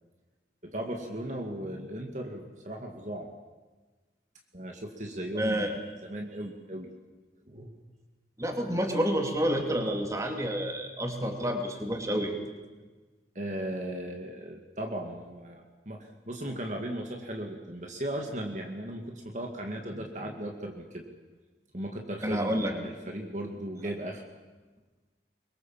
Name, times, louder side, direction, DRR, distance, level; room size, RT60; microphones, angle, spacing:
voice 1, 0.6-3.3 4.5-6.9 7.5-7.7 13.3-21.0 21.7-24.2, right 1 dB, 45° right, 2 dB, 2.2 m, -37 dB
voice 2, 5.3-5.7 8.4-12.3 22.2-22.7, equal, 20° right, 3 dB, 2.7 m, -29 dB
24.5 x 23.0 x 7.5 m, 1.3 s
head